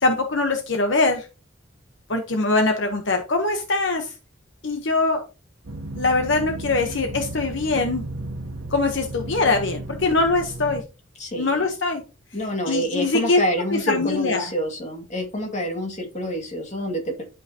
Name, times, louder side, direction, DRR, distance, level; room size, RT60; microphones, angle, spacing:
voice 1, 0.0-1.3 2.1-4.1 4.6-5.2 6.0-8.1 8.7-10.8 11.4-12.0 12.7-13.4 13.9-14.5, left 3 dB, 65° left, 5 dB, 1.0 m, -22 dB
sound 1, 5.6-10.8, right 2 dB, 85° right, 1.1 m, -34 dB
voice 2, 11.2-11.7 12.3-17.2, equal, 35° left, 2 dB, 2.1 m, -27 dB
11.0 x 5.7 x 2.9 m, 0.31 s
head